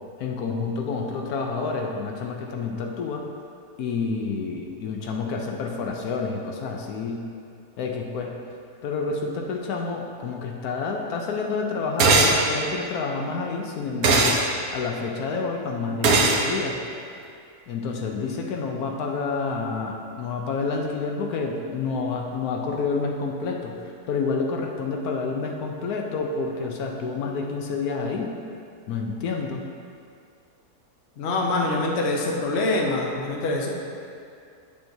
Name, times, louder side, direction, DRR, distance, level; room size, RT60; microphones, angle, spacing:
voice 1, 0.2-3.2 3.8-7.3 7.8-8.4 8.8-14.4 14.7-16.8 17.7-28.4 28.9-29.6, left 4 dB, 75° left, 1 dB, 1.1 m, -29 dB
sound 1, 12.0-12.4 14.0-14.4 16.0-16.4, right 3 dB, 70° right, 1.3 m, -18 dB
voice 2, 31.2-33.7, left 2 dB, 50° left, 0 dB, 0.9 m, -24 dB
8.3 x 6.9 x 2.7 m, 2.4 s
omnidirectional pair, 1.6 m